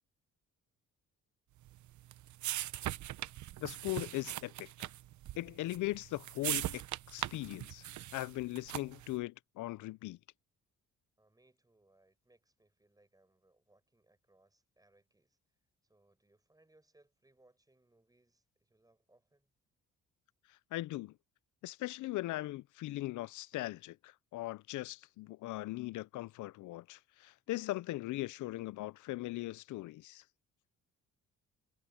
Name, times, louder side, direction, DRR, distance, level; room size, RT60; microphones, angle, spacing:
sound 1, 1.7-9.1, right 14 dB, 70° right, 0.9 m, -41 dB
voice 1, 3.6-4.9 5.4-6.8 7.1-10.2 20.7-21.1 21.6-30.2, left 17 dB, 80° left, 0.5 m, -39 dB
voice 2, 11.2-15.4 15.8-19.5, right 2 dB, 10° right, 7.5 m, -70 dB
cardioid pair, 90°, 30 cm